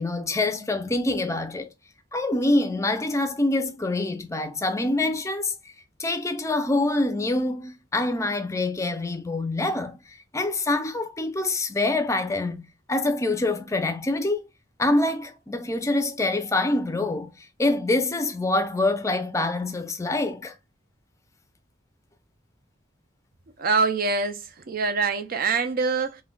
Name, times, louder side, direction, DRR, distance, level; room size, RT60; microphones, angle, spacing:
voice 1, 0.0-1.7 2.1-5.5 6.0-12.6 12.9-14.5 14.8-20.5, left 2 dB, 15° left, 0.4 m, -25 dB
voice 2, 23.6-26.2, right 4 dB, 50° right, 0.5 m, -25 dB
2.4 x 2.1 x 3.7 m
head